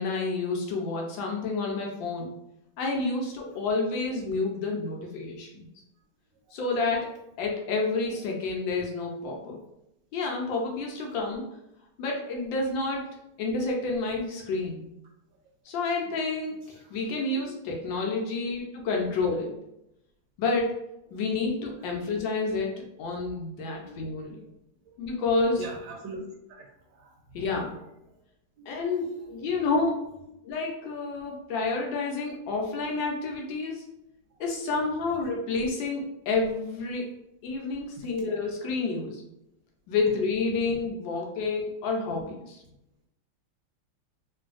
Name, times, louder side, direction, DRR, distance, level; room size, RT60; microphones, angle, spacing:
voice 1, 0.0-2.3 2.8-5.5 6.5-7.1 7.4-9.6 10.1-11.4 12.0-14.9 15.7-19.6 20.4-20.8 21.1-22.7 23.0-24.4 25.0-25.6 27.3-27.7 28.7-30.0 30.4-33.8 34.4-37.1 37.4-39.2 39.9-42.6, left 3 dB, 75° left, 0 dB, 1.2 m, -29 dB
voice 2, 21.8-22.2 23.7-24.0 24.4-24.6 24.9-25.0 25.6-26.2 26.5-27.6 28.6-29.3 30.2-30.3 31.1-31.4 31.7-31.8 34.3-34.4 35.1-35.2, right 3 dB, 75° right, 1 dB, 1.2 m, -45 dB
3.1 x 2.6 x 2.4 m, 0.84 s
omnidirectional pair, 2.2 m